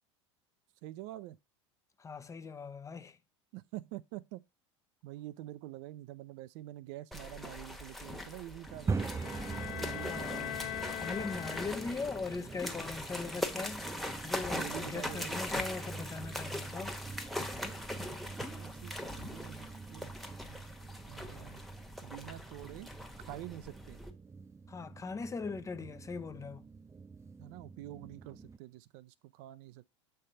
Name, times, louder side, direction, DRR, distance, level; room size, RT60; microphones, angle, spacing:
voice 1, 0.8-1.4 3.5-4.4 5.0-10.5 14.5-15.4 18.5-20.1 20.4-20.7 21.1-21.6 22.0-22.9 23.2-24.0 27.4-29.9, right 15 dB, 60° right, 0.5 m, -47 dB
voice 2, 2.0-3.2 9.9-13.9 14.2-17.0 24.7-26.7, left 4 dB, 20° left, 0.7 m, -40 dB
sound 1, 7.1-24.1, left 1 dB, ahead, 1.2 m, -41 dB
sound 2, 8.7-28.6, right 4 dB, 20° right, 0.7 m, -44 dB
sound 3, 8.9-12.2, left 12 dB, 60° left, 0.8 m, -41 dB
7.4 x 3.4 x 5.5 m
hypercardioid pair, 85°, 16 cm